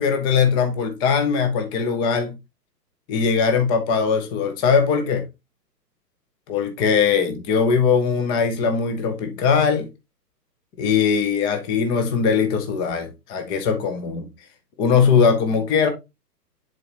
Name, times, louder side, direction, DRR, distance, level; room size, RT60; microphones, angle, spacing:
voice 1, 0.0-2.3 3.1-5.2 6.5-9.9 10.8-14.3 14.8-15.9, left 6 dB, 10° left, 0.5 m, -20 dB
10.5 x 3.9 x 2.9 m
figure-of-eight pair, 130°, 50 cm